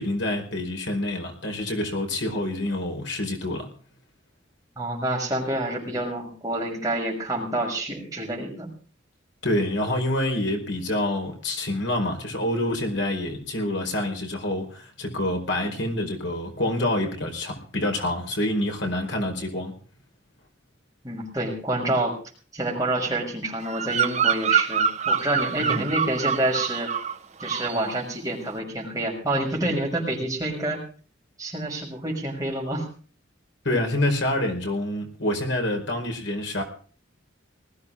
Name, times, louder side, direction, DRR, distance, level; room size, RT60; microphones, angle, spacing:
voice 1, 0.0-3.7 9.4-19.7 25.6-25.9 33.6-36.6, left 1 dB, 70° left, 3 dB, 4.8 m, -27 dB
voice 2, 4.8-8.7 21.0-22.2 22.5-26.9 27.4-30.8 31.4-32.9, right 1 dB, 20° right, -1 dB, 6.4 m, -28 dB
Bird vocalization bird call bird song, 23.6-27.2 27.4-27.8, right 7 dB, 35° right, 1.1 m, -25 dB
20.0 x 15.0 x 3.7 m, 0.41 s
head